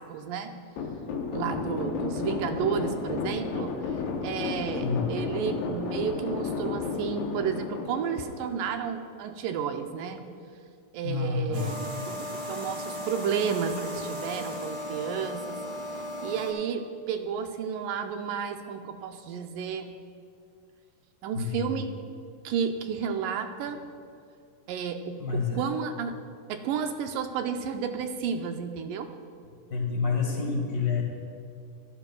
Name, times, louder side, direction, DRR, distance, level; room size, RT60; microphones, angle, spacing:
voice 1, 0.1-0.6 1.3-3.7 4.2-10.2 10.9-15.6 16.2-20.0 21.2-21.9 22.4-23.8 24.7-26.2 26.5-29.1, right 7 dB, 80° right, 6 dB, 2.2 m, -32 dB
sound 1, 0.8-9.0, left 5 dB, 85° left, 1.4 m, -33 dB
voice 2, 4.8-5.1 11.0-11.8 12.4-12.7 21.3-21.8 25.2-25.6 29.7-31.0, left 5 dB, 40° left, -1 dB, 1.5 m, -29 dB
sound 2, 11.5-16.5, left 1 dB, 55° right, 1.4 m, -36 dB
15.5 x 12.5 x 2.3 m, 2.4 s
omnidirectional pair, 4.1 m